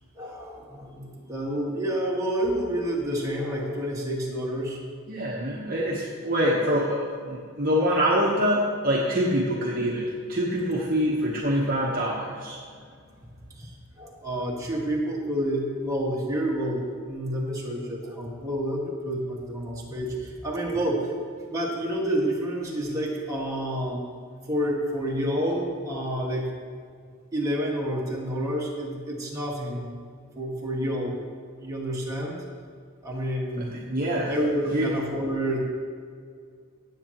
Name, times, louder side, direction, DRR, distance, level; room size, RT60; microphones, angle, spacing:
voice 1, 0.2-4.8 13.5-21.1 21.5-24.0 24.5-26.5 27.3-29.9 30.4-31.2 31.6-32.4 33.0-33.7 34.3-35.7, equal, 15° right, -4 dB, 1.7 m, -29 dB
voice 2, 5.1-12.6 33.6-34.3 34.7-34.9, equal, 40° right, -3 dB, 1.0 m, -25 dB
17.0 x 7.6 x 3.0 m, 2.1 s
head